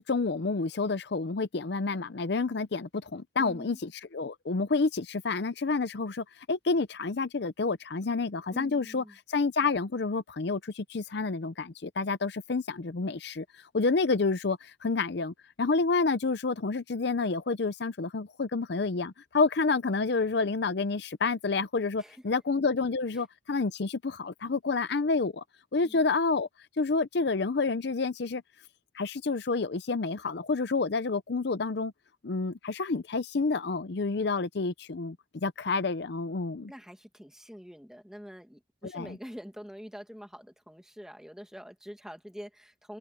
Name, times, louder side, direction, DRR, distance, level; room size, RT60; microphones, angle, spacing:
voice 1, 0.0-13.4 13.7-25.4 25.7-26.5 26.8-28.4 28.9-31.9 32.2-36.7 38.8-39.2, left 4 dB, 55° left, 0.6 m, -29 dB
voice 2, 3.4-3.8 8.5-9.2 22.0-22.2 25.8-26.0 36.7-43.0, equal, 5° right, 1.8 m, -45 dB
head